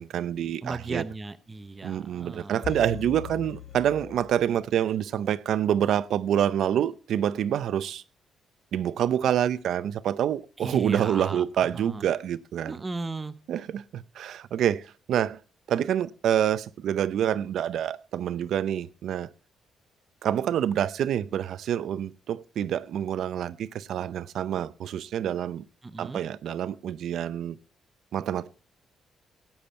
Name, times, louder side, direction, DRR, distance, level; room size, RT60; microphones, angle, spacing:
voice 1, 0.0-1.0 1.8-8.0 8.7-12.8 13.5-15.4 15.7-19.3 20.2-25.6 26.0-27.5 28.1-28.5, right 10 dB, 70° right, 0.6 m, -27 dB
voice 2, 0.6-2.7 10.6-12.0 12.7-13.4 25.8-26.2, right 3 dB, 20° right, 0.8 m, -36 dB
sound 1, 2.6-4.8 5.1-5.2, left 8 dB, 55° left, 2.6 m, -40 dB
17.0 x 8.8 x 4.3 m
cardioid pair, 150°, 0 cm